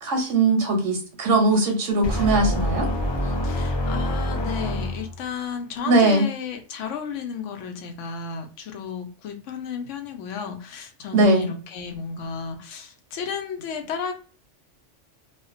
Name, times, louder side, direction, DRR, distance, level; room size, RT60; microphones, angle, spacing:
voice 1, 0.0-2.9 5.9-6.3 11.1-11.5, right 2 dB, 85° right, 2 dB, 1.0 m, -20 dB
sound 1, 2.0-5.3, equal, 25° left, 0.8 m, -26 dB
voice 2, 3.4-14.2, left 6 dB, 80° left, 5 dB, 0.9 m, -33 dB
2.4 x 2.1 x 2.4 m, 0.37 s
omnidirectional pair, 1.3 m